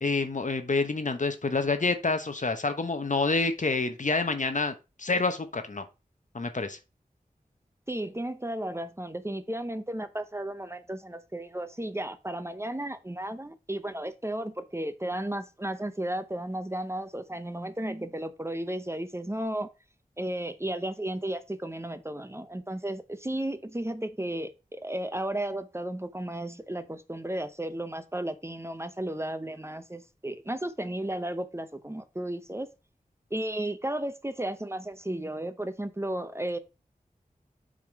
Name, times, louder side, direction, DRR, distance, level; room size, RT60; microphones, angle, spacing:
voice 1, 0.0-5.8 6.3-6.8, left 3 dB, 55° left, 1.0 m, -28 dB
voice 2, 7.9-19.7 20.2-32.7 33.3-36.6, right 1 dB, 15° right, 0.7 m, -34 dB
7.5 x 3.7 x 4.7 m
wide cardioid pair, 45°, 15 cm